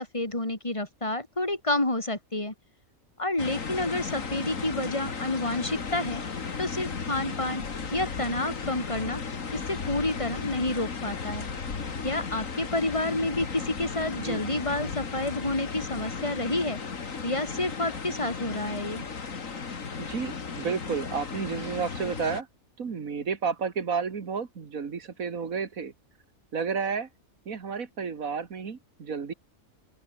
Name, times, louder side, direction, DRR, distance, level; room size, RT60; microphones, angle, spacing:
voice 1, 0.0-2.5 3.2-6.2 6.6-7.6 7.9-9.2 9.5-11.5 12.0-16.8 17.2-19.0, left 2 dB, 20° left, 3.7 m, -29 dB
sound 1, 3.4-22.4, left 5 dB, 65° left, 2.4 m, -35 dB
voice 2, 20.0-22.5 22.8-25.9 26.5-27.1 27.5-29.3, right 5 dB, 75° right, 2.2 m, -31 dB
open air
omnidirectional pair, 1.5 m